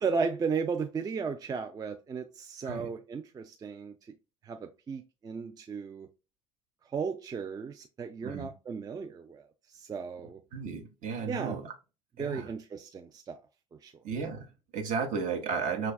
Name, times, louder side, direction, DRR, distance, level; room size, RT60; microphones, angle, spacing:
voice 1, 0.0-4.1 4.4-6.1 6.9-10.4 11.3-11.6 12.2-13.4 13.8-13.9, right 5 dB, 25° right, 0.4 m, -35 dB
voice 2, 10.5-11.7 12.2-12.5 14.0-15.9, right 5 dB, 50° right, 0.9 m, -34 dB
5.7 x 2.3 x 2.3 m
hypercardioid pair, 65°, 17 cm